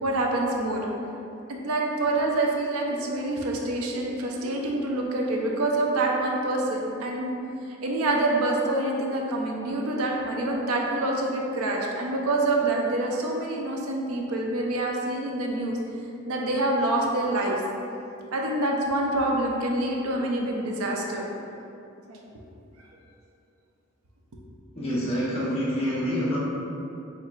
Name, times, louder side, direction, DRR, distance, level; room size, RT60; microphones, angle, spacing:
voice 1, 0.0-0.9 1.5-7.3 7.8-15.8 16.3-17.6 18.3-21.3 22.1-22.2, right 2 dB, 85° right, -1 dB, 0.5 m, -26 dB
voice 2, 24.7-26.4, equal, 30° left, -8 dB, 0.9 m, -27 dB
4.3 x 3.5 x 2.4 m, 2.7 s
head